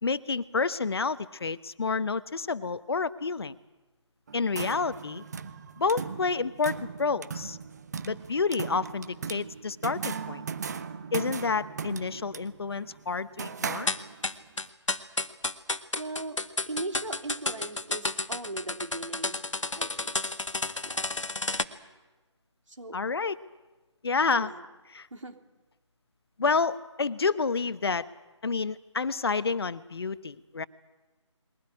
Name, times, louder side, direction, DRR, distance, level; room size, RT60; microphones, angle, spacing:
voice 1, 0.0-3.6 4.3-5.2 5.8-7.6 8.0-10.4 11.1-13.9 22.9-23.4 24.0-24.5 24.9-25.1 26.4-28.1 28.4-30.7, left 4 dB, 55° left, 15 dB, 1.0 m, -29 dB
sound 1, 4.3-14.4, right 6 dB, 35° right, 1.1 m, -38 dB
sound 2, 13.9-21.6, left 2 dB, 80° left, 1.6 m, -31 dB
voice 2, 16.0-16.4 16.7-19.4 19.7-20.1 20.8-21.1 22.7-23.0 24.4-24.7 25.1-25.3, right 2 dB, 80° right, 3 dB, 3.5 m, -38 dB
22.0 x 17.5 x 9.8 m, 1.2 s
figure-of-eight pair, 160°, 16 cm